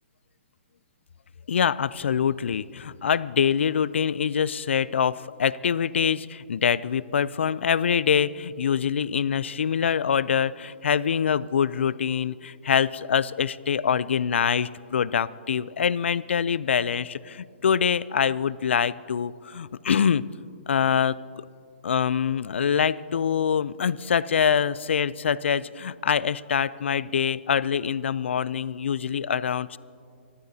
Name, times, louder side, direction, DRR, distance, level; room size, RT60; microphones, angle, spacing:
voice 1, 1.5-20.2 20.7-21.4 21.8-29.8, left 7 dB, 80° left, 19 dB, 0.4 m, -24 dB
25.5 x 13.5 x 2.8 m, 2.3 s
hypercardioid pair, 150°, 6 cm